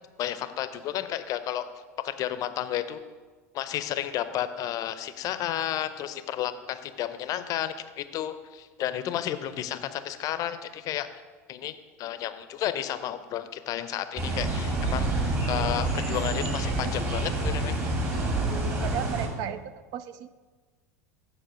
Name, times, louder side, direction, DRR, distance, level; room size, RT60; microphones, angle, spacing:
voice 1, 0.2-1.7 2.0-3.0 3.5-11.2 11.5-17.8, left 11 dB, 45° left, 12 dB, 0.6 m, -32 dB
sound 1, 14.2-19.3, right 2 dB, 35° right, 2.1 m, -28 dB
voice 2, 18.7-19.6 19.9-20.3, right 10 dB, 55° right, 14 dB, 0.4 m, -34 dB
9.0 x 4.9 x 5.0 m, 1.4 s
hypercardioid pair, 85°, 8 cm